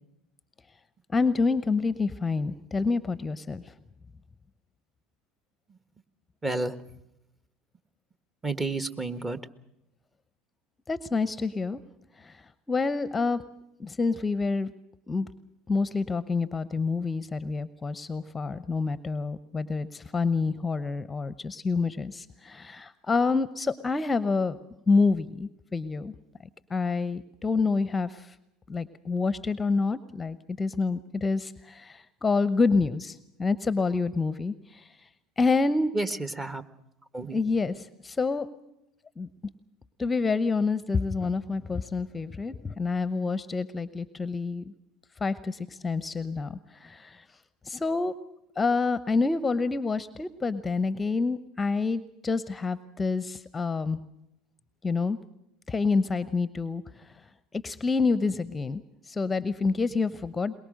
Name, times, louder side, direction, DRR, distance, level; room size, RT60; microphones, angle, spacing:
voice 1, 1.1-3.6 10.9-11.8 12.2-12.3 12.7-13.4 13.8-14.7 15.1-15.3 15.7-24.6 24.9-26.1 26.7-28.3 28.7-34.9 35.4-35.9 37.3-38.5 39.2-39.3 40.0-44.7 45.2-47.2 47.7-48.2 48.6-54.0 54.8-55.2 55.7-56.8 57.6-58.8 59.1-60.5, left 4 dB, 20° left, 15 dB, 0.8 m, -27 dB
voice 2, 6.4-6.7 8.4-9.4 35.9-36.6 37.1-37.4, right 2 dB, 20° right, 11 dB, 1.5 m, -30 dB
23.0 x 21.5 x 6.5 m, 0.85 s
hypercardioid pair, 75°, 0 cm